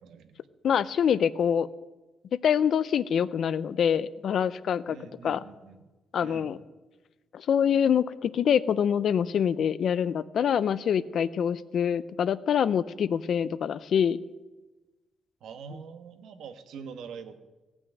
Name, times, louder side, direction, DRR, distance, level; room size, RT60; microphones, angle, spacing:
voice 1, 0.0-0.4 4.9-5.8 6.2-6.5 15.4-17.4, right 6 dB, 70° right, 10 dB, 1.2 m, -44 dB
voice 2, 0.6-1.7 2.4-5.0 5.2-5.4 6.1-6.6 7.3-14.2, left 8 dB, 50° left, 17 dB, 0.5 m, -25 dB
17.0 x 6.2 x 9.1 m, 1.2 s
cardioid pair, 170°, 0 cm